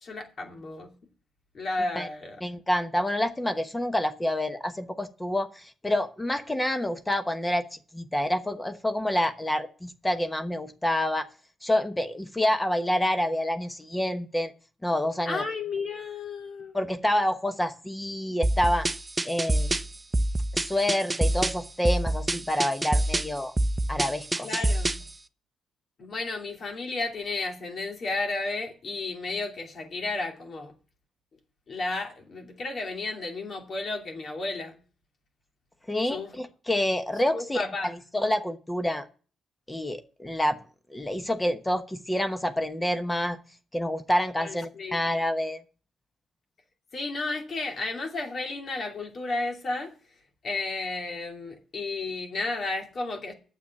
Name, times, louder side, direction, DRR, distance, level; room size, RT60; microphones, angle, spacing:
voice 1, 0.0-0.9 1.5-2.4 15.3-16.7 24.4-25.0 26.0-30.7 31.7-34.7 36.0-36.3 37.3-37.9 44.4-45.0 46.9-49.9 50.4-53.3, left 3 dB, 55° left, 2.7 m, -33 dB
voice 2, 2.4-11.3 11.6-14.5 14.8-15.4 16.7-18.9 19.2-19.7 20.5-23.5 23.9-24.5 35.9-39.1 39.7-40.6 40.9-43.4 43.7-45.6, left 1 dB, 15° left, 1.1 m, -28 dB
sound 1, 18.4-25.1, right 1 dB, 20° right, 0.6 m, -27 dB
9.3 x 7.2 x 7.1 m
cardioid pair, 70°, 0 cm